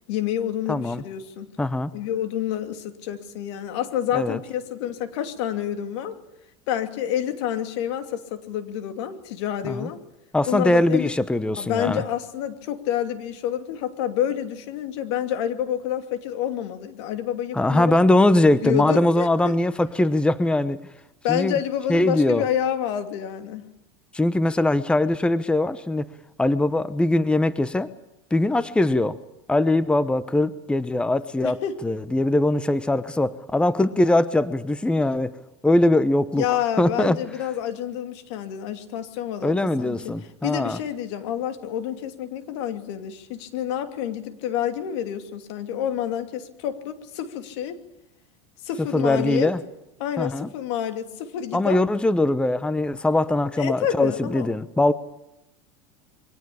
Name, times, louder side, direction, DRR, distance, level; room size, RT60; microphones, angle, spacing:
voice 1, 0.1-1.5 1.9-6.2 6.7-10.0 10.5-11.1 11.6-18.0 18.6-19.5 21.2-23.6 31.4-31.7 36.4-40.1 40.4-47.8 48.6-49.5 50.0-51.8 53.6-54.5, left 10 dB, 70° left, 8 dB, 2.7 m, -28 dB
voice 2, 0.7-1.0 1.6-1.9 4.1-4.4 9.6-9.9 10.3-12.0 17.5-20.8 21.3-21.5 21.9-22.4 24.1-26.1 26.4-27.9 28.3-29.2 29.5-35.3 35.6-36.4 36.8-37.2 39.4-40.8 48.9-49.6 50.2-50.5 51.5-54.9, left 1 dB, 5° left, 15 dB, 0.9 m, -21 dB
23.5 x 18.5 x 8.7 m, 0.89 s
supercardioid pair, 115°, 15 cm